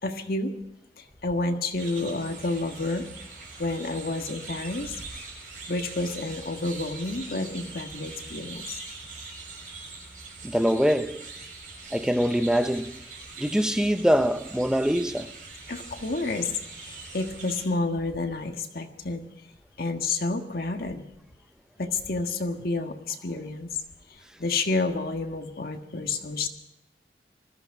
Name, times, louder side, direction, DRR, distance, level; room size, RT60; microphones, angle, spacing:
voice 1, 0.0-0.5 1.0-3.1 3.6-5.0 5.7-8.8 15.7-16.5 16.8-19.3 19.8-21.0 21.8-23.7 24.1-26.5, left 3 dB, 55° left, 1.6 m, -30 dB
sound 1, 1.8-17.7, right 3 dB, 50° right, 6.3 m, -42 dB
voice 2, 10.4-11.2 11.9-13.0 13.4-15.3, equal, 5° right, 0.6 m, -23 dB
20.5 x 14.5 x 4.8 m
head